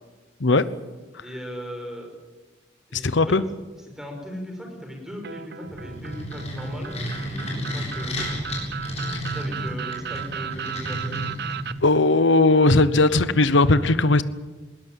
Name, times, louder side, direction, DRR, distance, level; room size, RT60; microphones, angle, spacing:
voice 1, 1.2-2.1 2.9-3.4 3.9-8.3 9.3-11.3, equal, ahead, 2 dB, 5.4 m, -38 dB
voice 2, 2.9-3.4 9.1-9.2 11.8-14.2, left 2 dB, 70° left, 14 dB, 1.0 m, -18 dB
sound 1, 5.2-11.7, right 8 dB, 55° right, 0.8 m, -35 dB
sound 2, 5.6-12.0, equal, 35° left, 7.9 m, -32 dB
20.5 x 18.0 x 9.1 m, 1.2 s
head